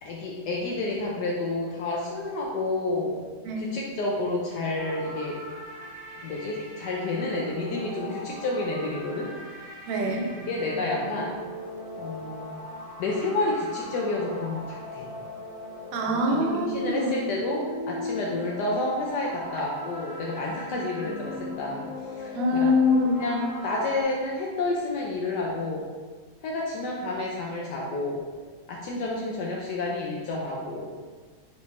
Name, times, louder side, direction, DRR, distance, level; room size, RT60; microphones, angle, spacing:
voice 1, 0.0-3.3 3.6-5.4 6.2-9.3 10.5-11.3 12.0-12.5 13.0-15.1 16.3-22.7 23.2-25.8 26.4-28.2 28.7-30.9, left 2 dB, 75° left, -3 dB, 1.0 m, -30 dB
sound 1, 4.8-24.0, left 1 dB, 30° right, 0.7 m, -39 dB
voice 2, 9.9-10.2 15.9-17.1 22.3-23.4, left 2 dB, 80° right, 2 dB, 1.3 m, -24 dB
3.9 x 3.3 x 3.1 m, 1.4 s
omnidirectional pair, 2.2 m